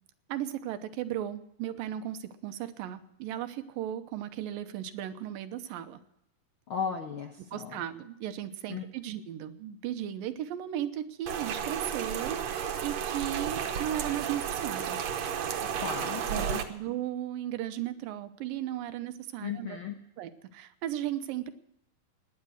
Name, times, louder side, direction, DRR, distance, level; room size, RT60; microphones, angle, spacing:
voice 1, 0.3-6.0 7.5-15.0 16.3-19.8 20.2-21.5, right 11 dB, 90° right, 10 dB, 2.6 m, -36 dB
voice 2, 6.7-7.8 8.7-8.8 15.8-16.6 19.4-20.0, left 7 dB, 75° left, 4 dB, 1.2 m, -36 dB
Rain, 11.3-16.6, right 8 dB, 60° right, 2.0 m, -33 dB
17.5 x 10.5 x 6.4 m, 0.79 s
omnidirectional pair, 3.9 m